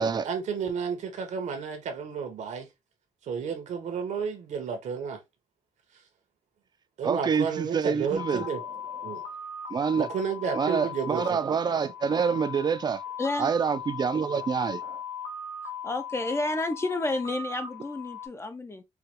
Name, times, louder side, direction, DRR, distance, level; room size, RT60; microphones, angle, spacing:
voice 1, 0.0-2.7 3.3-5.2 7.0-8.6 9.0-9.2 9.9-11.2, right 6 dB, 75° right, 1.2 m, -31 dB
voice 2, 7.0-8.5 9.1-9.2 9.7-10.1 10.5-13.0 13.4-15.0, right 6 dB, 35° right, 0.4 m, -27 dB
sound 1, 8.1-18.3, left 5 dB, 80° left, 1.7 m, -38 dB
voice 3, 13.2-13.5 15.8-18.8, left 2 dB, 20° left, 0.5 m, -30 dB
4.7 x 2.3 x 2.9 m
cardioid pair, 130°, 12 cm